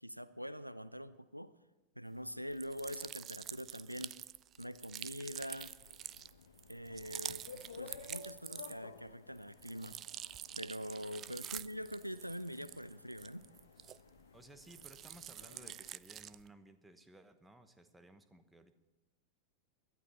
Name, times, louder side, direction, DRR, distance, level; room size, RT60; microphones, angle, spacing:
voice 1, 0.0-1.5 2.0-4.2 4.6-5.7 6.7-10.0 10.6-13.5, equal, 90° right, 16 dB, 0.5 m, -44 dB
sound 1, 2.5-9.0 9.4-14.3 14.6-16.5, right 11 dB, 30° right, 0.4 m, -47 dB
sound 2, 5.5-15.9, left 5 dB, 65° left, 1.0 m, -55 dB
voice 2, 11.2-11.6 14.3-18.7, right 2 dB, 10° right, 10 dB, 1.1 m, -59 dB
20.5 x 11.5 x 4.2 m, 1.1 s
figure-of-eight pair, 90°, 0 cm